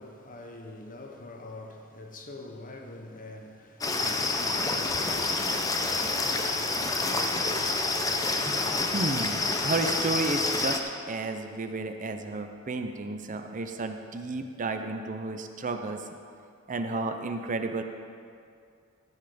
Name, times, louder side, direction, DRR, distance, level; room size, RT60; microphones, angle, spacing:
voice 1, 0.0-5.3, left 2 dB, 40° left, 1.2 m, -44 dB
sound 1, 3.8-10.8, left 3 dB, 15° left, 0.7 m, -28 dB
voice 2, 8.9-10.8 11.1-16.0 16.7-17.8, right 3 dB, 40° right, 0.6 m, -32 dB
13.5 x 8.2 x 5.1 m
head